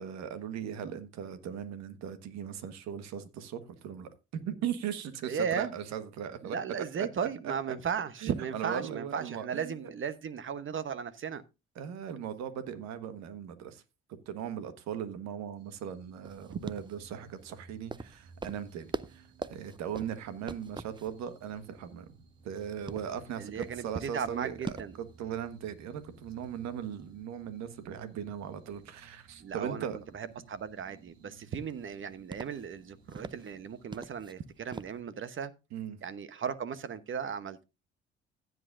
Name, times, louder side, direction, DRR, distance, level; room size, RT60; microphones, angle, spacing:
voice 1, 0.0-4.1 4.4-6.6 7.0-7.1 8.2-9.8 11.7-13.8 14.2-22.1 22.4-24.6 25.0-30.0 35.7-36.0, right 9 dB, 65° right, 1.4 m, -38 dB
voice 2, 5.3-5.7 6.4-11.4 16.5-16.6 23.4-25.0 29.4-29.9 30.1-35.5 36.0-37.6, right 7 dB, 45° right, 1.0 m, -36 dB
sound 1, 15.6-34.0, right 4 dB, 85° right, 1.6 m, -61 dB
sound 2, 16.2-35.0, right 4 dB, 15° right, 0.5 m, -47 dB
15.5 x 8.0 x 2.5 m
hypercardioid pair, 55°, 29 cm